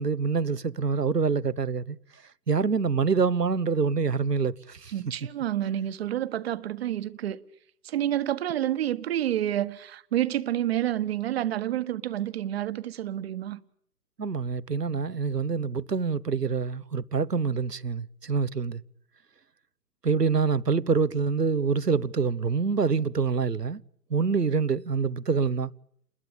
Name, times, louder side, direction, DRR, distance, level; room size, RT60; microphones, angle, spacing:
voice 1, 0.0-2.0 2.5-4.9 14.2-18.8 20.0-23.8 24.1-25.7, right 5 dB, 85° right, 1.1 m, -26 dB
voice 2, 4.9-7.4 7.8-13.6, right 12 dB, 40° right, 1.4 m, -29 dB
29.5 x 21.0 x 8.7 m
figure-of-eight pair, 125°, 47 cm